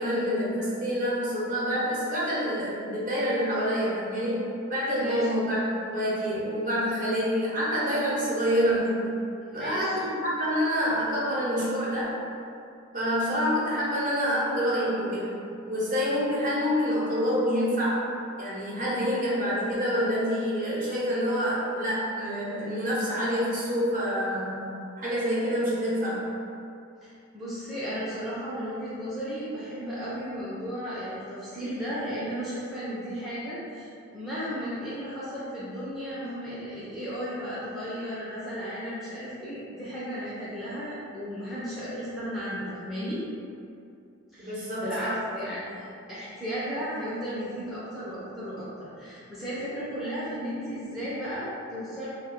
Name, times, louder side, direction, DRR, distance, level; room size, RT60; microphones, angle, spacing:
voice 1, 0.0-5.6 5.9-9.1 9.5-12.2 12.9-15.3 15.7-18.1 18.4-24.6 25.0-26.3 44.4-45.4, equal, 35° right, -7 dB, 0.8 m, -27 dB
voice 2, 9.5-9.9 27.0-43.2 44.3-52.1, equal, ahead, -11 dB, 0.5 m, -35 dB
3.3 x 2.2 x 3.6 m, 2.6 s
head